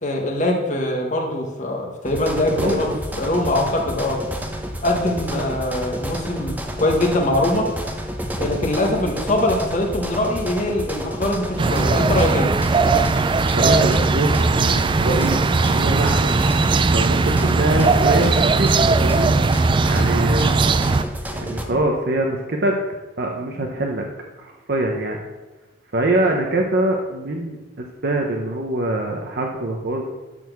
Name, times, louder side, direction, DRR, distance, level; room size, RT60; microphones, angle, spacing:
voice 1, 0.0-2.9 3.2-4.2 4.8-7.7 8.4-12.5 21.7-21.8, left 1 dB, 40° left, 0 dB, 1.6 m, -22 dB
sound 1, 2.0-21.6, equal, 10° right, 0.9 m, -30 dB
voice 2, 2.6-2.9 13.3-16.3 16.9-19.3 19.9-20.5 21.2-22.7 23.2-24.1 24.4-25.2 25.9-30.1, right 1 dB, 55° right, 1 dB, 0.9 m, -24 dB
sound 2, 11.6-21.0, right 3 dB, 25° right, 0.3 m, -18 dB
11.0 x 4.2 x 7.0 m, 1.2 s
head